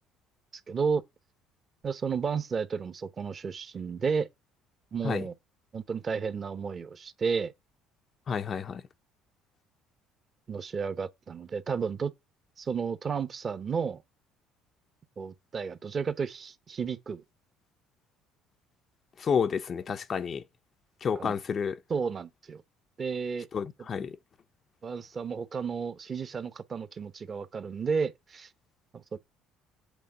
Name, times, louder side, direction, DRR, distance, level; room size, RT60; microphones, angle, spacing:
voice 1, 0.7-1.0 1.8-4.3 4.9-5.3 5.7-7.5 10.5-12.1 12.6-14.0 15.2-17.2 21.1-21.3 21.9-22.6 23.0-23.5 24.8-28.5 29.1-29.2, right 5 dB, 30° right, 0.8 m, -32 dB
voice 2, 8.3-8.8 19.2-20.4 21.0-21.8 23.5-24.2, left 6 dB, 35° left, 0.5 m, -30 dB
8.3 x 3.5 x 6.4 m
cardioid pair, 125°, 0 cm